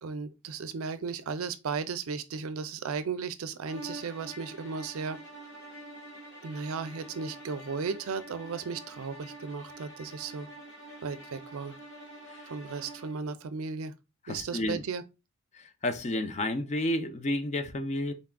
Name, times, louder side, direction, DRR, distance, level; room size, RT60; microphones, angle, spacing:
voice 1, 0.0-5.2 6.4-10.5 11.0-11.7 12.5-13.9 14.3-15.0, right 5 dB, 70° right, 0.5 m, -35 dB
sound 1, 3.6-13.3, right 2 dB, 55° left, 1.7 m, -47 dB
voice 2, 14.3-14.8 15.5-18.1, left 1 dB, 30° left, 0.5 m, -31 dB
4.0 x 3.6 x 2.2 m
head